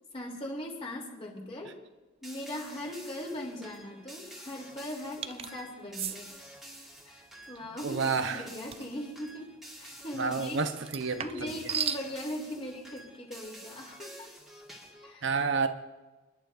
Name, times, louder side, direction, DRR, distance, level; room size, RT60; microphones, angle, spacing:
voice 1, 0.1-1.8 2.2-6.3 7.1-10.6 11.2-14.3 15.0-15.3, left 1 dB, 30° left, -2 dB, 3.2 m, -40 dB
sound 1, 2.2-15.1, right 1 dB, ahead, 1.9 m, -49 dB
sound 2, 5.2-5.5 5.9-6.2 8.7-8.9 10.8-12.0, right 7 dB, 30° right, 0.4 m, -34 dB
voice 2, 7.8-8.5 10.2-11.6 15.2-15.7, right 4 dB, 60° right, 7 dB, 0.9 m, -30 dB
29.0 x 11.5 x 2.6 m, 1.2 s
head